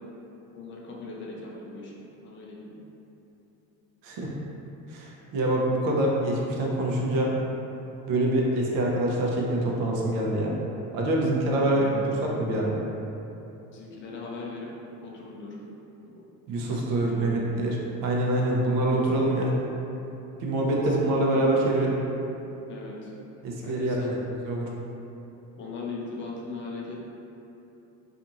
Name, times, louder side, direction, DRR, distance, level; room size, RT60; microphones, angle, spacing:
voice 1, 0.5-1.9 2.2-2.8 11.6-12.0 13.7-14.7 15.0-15.6 16.1-16.2 16.6-17.4 21.0-21.5 22.7-23.1 23.6-24.2 25.6-27.0, left 3 dB, 35° left, -3 dB, 0.4 m, -39 dB
voice 2, 4.9-7.3 8.1-10.5 10.9-12.7 16.5-17.8 18.0-19.5 20.4-22.0 23.4-24.1 24.4-24.7, right 1 dB, 75° right, -3 dB, 0.6 m, -25 dB
2.6 x 2.4 x 2.8 m, 2.9 s
cardioid pair, 140°, 33 cm